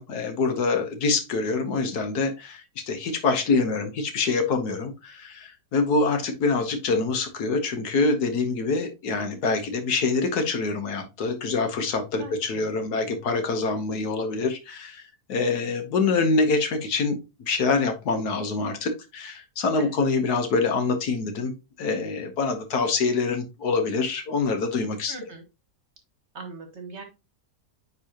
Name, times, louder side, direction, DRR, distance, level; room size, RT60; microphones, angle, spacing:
voice 1, 0.0-17.2 17.5-21.5 21.8-25.1, left 4 dB, 70° left, 7 dB, 1.6 m, -25 dB
voice 2, 12.2-12.7 19.8-20.0 25.1-25.4 26.3-27.0, right 3 dB, 45° right, 5 dB, 1.4 m, -40 dB
9.6 x 3.7 x 2.8 m, 0.26 s
omnidirectional pair, 1.7 m